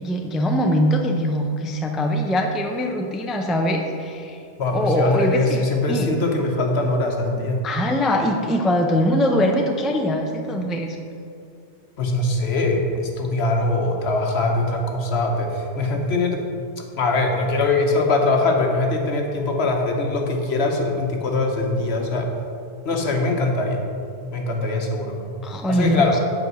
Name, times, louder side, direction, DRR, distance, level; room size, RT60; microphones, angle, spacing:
voice 1, 0.0-4.4 4.7-6.1 7.6-11.0 25.4-26.0, equal, ahead, 2 dB, 0.4 m, -22 dB
voice 2, 4.6-7.6 12.0-16.4 17.0-22.3 22.8-23.8 24.3-25.2 25.7-26.2, left 2 dB, 70° left, 2 dB, 1.3 m, -22 dB
8.2 x 5.1 x 6.2 m, 2.4 s
omnidirectional pair, 1.1 m